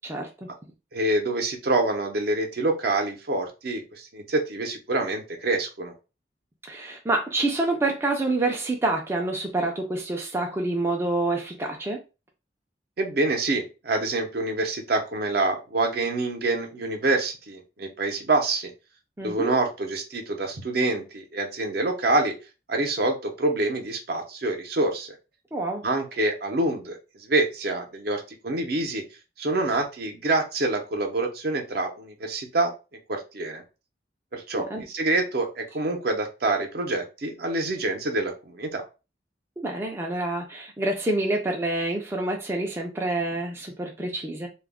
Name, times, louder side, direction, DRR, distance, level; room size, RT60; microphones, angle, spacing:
voice 1, 0.0-0.5 6.7-12.0 19.2-19.5 25.5-25.8 34.5-34.8 39.6-44.5, right 2 dB, 15° right, 0.4 m, -27 dB
voice 2, 0.9-5.9 13.0-18.7 19.2-22.4 22.7-25.1 25.8-29.0 29.4-32.7 33.1-33.6 34.3-38.8, right 2 dB, 55° right, 0.6 m, -26 dB
2.3 x 2.0 x 3.5 m
head